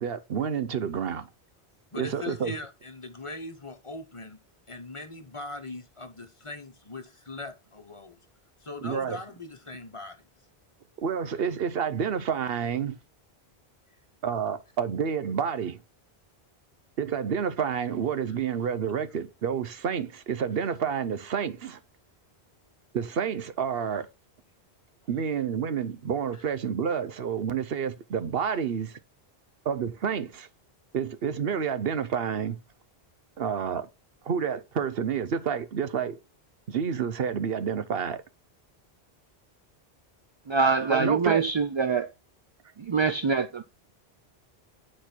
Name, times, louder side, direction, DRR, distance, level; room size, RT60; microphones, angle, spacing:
voice 1, 0.0-1.3 2.0-2.5 8.8-9.2 11.0-13.0 14.2-15.8 17.0-21.8 22.9-24.1 25.1-29.0 29.6-30.5 30.9-32.6 33.4-33.9 34.3-36.2 36.7-38.2 40.9-41.4, right 7 dB, 65° right, 1.0 m, -29 dB
voice 2, 1.9-4.4 4.7-8.2 8.6-10.2, left 2 dB, 30° left, 1.1 m, -40 dB
voice 3, 40.5-42.1 42.9-43.6, right 5 dB, 45° right, 0.4 m, -24 dB
10.0 x 4.3 x 4.4 m
omnidirectional pair, 1.1 m